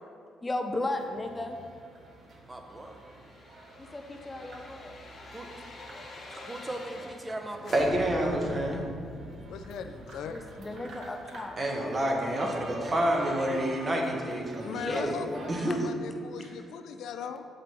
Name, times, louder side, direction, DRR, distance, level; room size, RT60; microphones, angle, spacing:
voice 1, 0.4-1.6 3.8-5.0 10.3-11.6 14.8-15.0 15.3-15.5, left 2 dB, 20° left, 4 dB, 0.4 m, -35 dB
sound 1, 0.9-15.8, right 2 dB, 60° right, 0.8 m, -48 dB
voice 2, 2.5-3.0 5.3-5.5 6.5-7.8 12.8-13.6, right 1 dB, 20° right, 3 dB, 0.7 m, -39 dB
sound 2, 2.6-7.4 7.6-12.5 12.9-13.0, left 2 dB, 50° left, 1.0 m, -46 dB
voice 3, 7.7-8.9 11.6-15.2 15.5-15.8, right 1 dB, 35° right, 0 dB, 1.1 m, -28 dB
voice 4, 9.5-10.3 10.7-10.8 11.3-11.4 14.6-17.5, left 7 dB, 80° left, 8 dB, 0.4 m, -39 dB
7.4 x 5.1 x 3.0 m, 2.2 s
cardioid pair, 90°, 0 cm